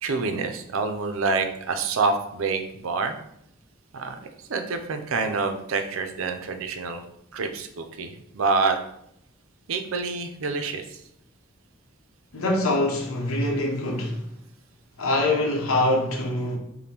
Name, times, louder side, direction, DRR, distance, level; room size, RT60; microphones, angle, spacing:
voice 1, 0.0-3.1 3.9-4.2 4.5-7.0 7.3-8.8 9.7-11.0, right 4 dB, 80° right, 0.4 m, -27 dB
voice 2, 12.3-14.2 15.0-16.6, left 2 dB, 85° left, 0.8 m, -24 dB
5.2 x 2.1 x 2.9 m
head